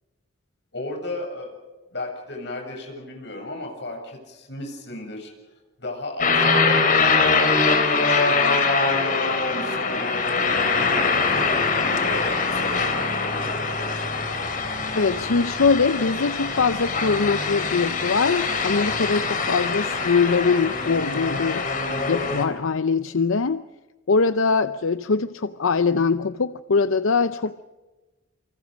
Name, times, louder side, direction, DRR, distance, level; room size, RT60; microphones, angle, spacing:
voice 1, 0.7-1.5 1.9-5.3 5.8-11.2 12.0-13.9, left 2 dB, 55° left, 2 dB, 7.3 m, -35 dB
sound 1, 6.2-22.5, left 4 dB, 40° left, 3.6 m, -23 dB
voice 2, 14.9-21.6 22.1-23.6 24.1-27.6, left 4 dB, 85° left, 12 dB, 0.7 m, -22 dB
28.5 x 25.5 x 5.2 m, 1.2 s
head